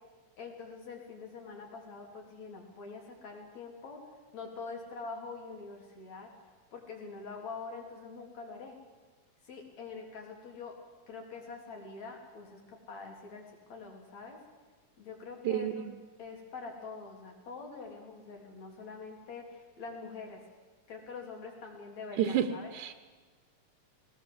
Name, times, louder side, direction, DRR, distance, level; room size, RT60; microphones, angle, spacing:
voice 1, 0.4-4.0 4.3-6.3 6.7-8.8 9.4-10.7 11.1-14.4 15.0-15.9 16.2-20.4 20.9-22.7, left 4 dB, 65° left, 1 dB, 4.8 m, -45 dB
voice 2, 15.4-15.9 22.2-22.9, right 10 dB, 85° right, 9 dB, 2.4 m, -30 dB
21.0 x 18.5 x 7.8 m, 1.4 s
omnidirectional pair, 3.4 m